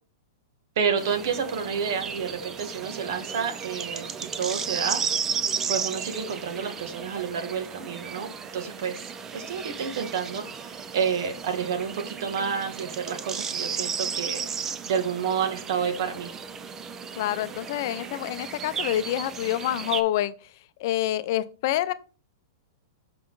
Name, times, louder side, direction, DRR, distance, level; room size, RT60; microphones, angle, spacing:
voice 1, 0.8-5.0 5.7-14.4 14.9-16.3, right 6 dB, 60° right, 1.5 m, -30 dB
sound 1, 1.0-20.0, right 6 dB, 20° right, 0.5 m, -34 dB
voice 2, 17.2-20.5 20.8-21.9, left 13 dB, 50° left, 0.5 m, -27 dB
5.8 x 5.7 x 3.9 m
hypercardioid pair, 150°, 2 cm